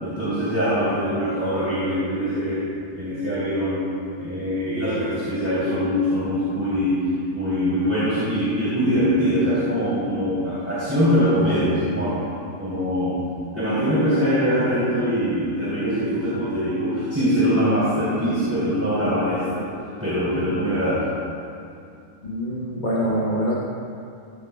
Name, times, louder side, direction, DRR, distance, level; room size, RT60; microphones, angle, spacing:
voice 1, 0.0-2.6 2.9-3.8 4.2-7.0 7.3-12.1 12.6-13.2 13.5-19.6 20.0-21.0, equal, 10° right, -12 dB, 3.6 m, -22 dB
voice 2, 22.2-23.5, equal, 35° left, -5 dB, 1.4 m, -24 dB
16.5 x 15.5 x 2.3 m, 2.5 s
omnidirectional pair, 1.6 m